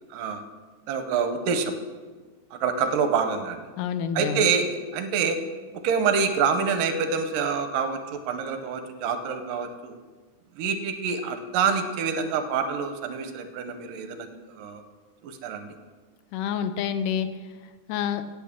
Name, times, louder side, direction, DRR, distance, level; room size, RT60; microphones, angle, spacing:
voice 1, 0.1-0.4 0.9-1.8 2.6-3.6 4.1-5.4 5.8-10.0 10.6-14.3 14.6-14.8 15.2-15.8, right 6 dB, 75° right, 7 dB, 2.3 m, -26 dB
voice 2, 3.8-4.5 16.3-17.3 17.9-18.2, left 8 dB, 80° left, 10 dB, 2.0 m, -28 dB
16.5 x 8.6 x 3.6 m, 1.4 s
omnidirectional pair, 4.1 m